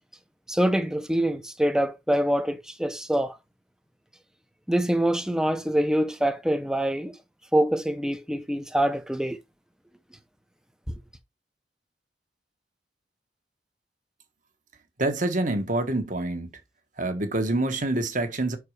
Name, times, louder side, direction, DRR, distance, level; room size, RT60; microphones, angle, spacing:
voice 1, 0.5-3.3 4.7-7.2 7.5-9.4, right 1 dB, 5° right, 0.8 m, -25 dB
voice 2, 15.0-16.5 17.0-18.6, right 2 dB, 45° right, 1.4 m, -26 dB
6.1 x 4.7 x 4.8 m
head